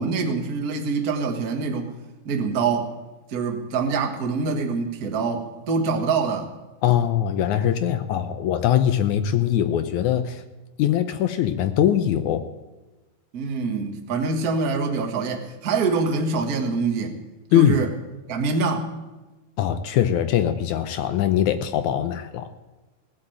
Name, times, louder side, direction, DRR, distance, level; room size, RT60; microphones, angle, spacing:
voice 1, 0.0-1.9 2.2-2.9 3.3-6.5 13.3-17.2 17.5-17.9 18.3-18.9, right 4 dB, 40° right, 3 dB, 1.3 m, -25 dB
voice 2, 6.8-10.4 10.8-12.4 17.5-17.8 19.6-22.5, left 10 dB, 75° left, 11 dB, 1.8 m, -22 dB
16.5 x 8.1 x 8.7 m, 1.1 s
omnidirectional pair, 4.2 m